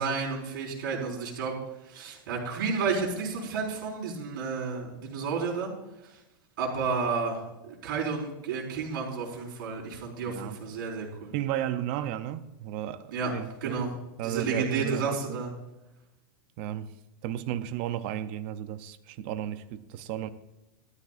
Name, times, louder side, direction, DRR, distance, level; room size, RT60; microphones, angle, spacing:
voice 1, 0.0-1.5 1.9-5.7 6.6-7.4 7.7-11.3 13.1-13.3 13.6-13.9 14.2-15.5, right 5 dB, 60° right, 4.4 m, -31 dB
voice 2, 11.3-13.8 14.2-15.4 16.6-16.9 17.2-20.3, right 12 dB, 35° right, 0.5 m, -33 dB
14.0 x 13.0 x 2.5 m
supercardioid pair, 180°, 12 cm